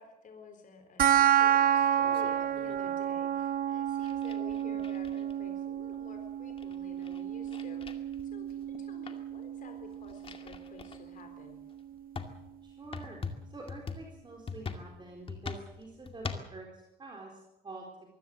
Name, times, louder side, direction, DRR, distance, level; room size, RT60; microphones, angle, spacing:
voice 1, 0.0-11.6, left 5 dB, 55° left, 6 dB, 4.0 m, -51 dB
sound 1, 1.0-12.0, right 10 dB, 60° right, 0.8 m, -30 dB
sound 2, 1.5-3.0 3.9-5.5 6.0-6.1 6.3-8.8 9.1-9.3 9.8-11.0 11.6-11.7 12.1-16.6, left 5 dB, 35° left, 2.3 m, -43 dB
voice 2, 12.6-13.2 13.5-17.9, right 2 dB, 30° right, -1 dB, 4.2 m, -47 dB
24.0 x 16.0 x 7.8 m, 0.89 s
cardioid pair, 135°, 16 cm